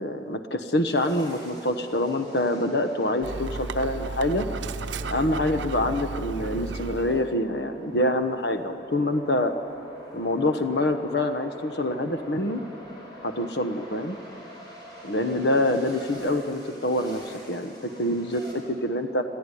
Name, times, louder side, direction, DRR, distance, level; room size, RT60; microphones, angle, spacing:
voice 1, 0.0-4.4 5.1-9.5 10.1-12.6 13.2-14.2 15.0-19.2, left 1 dB, 65° left, 8 dB, 1.1 m, -26 dB
sound 1, 0.8-18.5, equal, 25° left, 4.9 m, -46 dB
Dog, 3.2-7.4, right 3 dB, 85° right, 0.7 m, -34 dB
22.0 x 14.5 x 9.9 m, 2.6 s
head